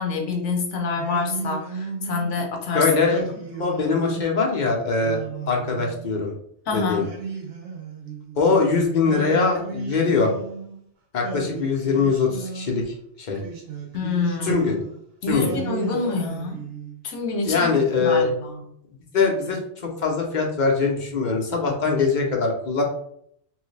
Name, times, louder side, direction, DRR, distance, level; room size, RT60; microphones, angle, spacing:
voice 1, 0.0-2.9 6.7-7.1 13.9-14.6 15.2-16.6 17.0-18.6, left 4 dB, 85° left, 3 dB, 1.1 m, -27 dB
Singing, 1.0-2.4 3.1-4.4 5.0-6.3 7.0-8.5 9.0-10.8 11.2-12.9 13.3-15.0 15.4-17.0, right 4 dB, 60° right, 1.0 m, -35 dB
voice 2, 2.7-3.2 3.5-6.3 6.7-7.0 8.4-10.3 11.1-13.4 14.4-14.8 15.3-15.5 17.5-18.3 19.1-22.8, left 4 dB, 45° left, 0 dB, 0.9 m, -22 dB
3.2 x 3.2 x 3.2 m, 0.68 s
omnidirectional pair, 1.2 m